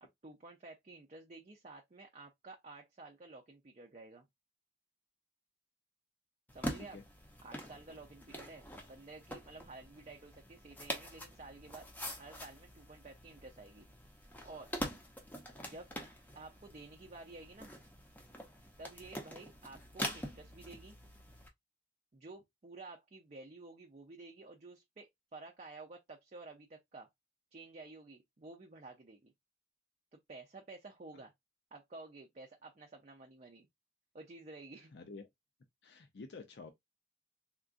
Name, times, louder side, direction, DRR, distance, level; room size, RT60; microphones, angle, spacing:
voice 1, 0.0-4.3 6.5-7.0 7.4-11.9 12.2-13.9 14.4-14.7 15.6-15.9 16.3-17.7 18.8-21.0 22.1-27.1 27.5-29.3 30.1-31.3 31.7-33.7 34.1-34.9, right 3 dB, 40° right, 0.5 m, -52 dB
sound 1, 6.5-21.5, equal, 10° left, 0.6 m, -45 dB
voice 2, 34.9-35.2 35.8-36.7, left 3 dB, 70° left, 0.5 m, -49 dB
3.7 x 2.4 x 2.4 m
head